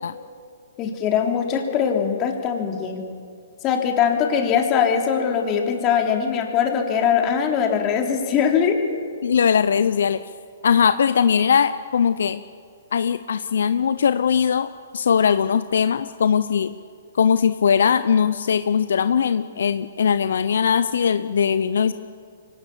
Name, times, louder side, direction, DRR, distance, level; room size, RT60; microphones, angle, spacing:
voice 1, 0.8-3.0 3.6-8.8, left 7 dB, 30° left, 2 dB, 3.5 m, -21 dB
voice 2, 9.2-10.2 10.6-12.4 12.9-16.7 17.2-21.9, left 7 dB, 70° left, 12 dB, 0.7 m, -20 dB
24.5 x 18.5 x 7.0 m, 2.4 s
hypercardioid pair, 130°, 0 cm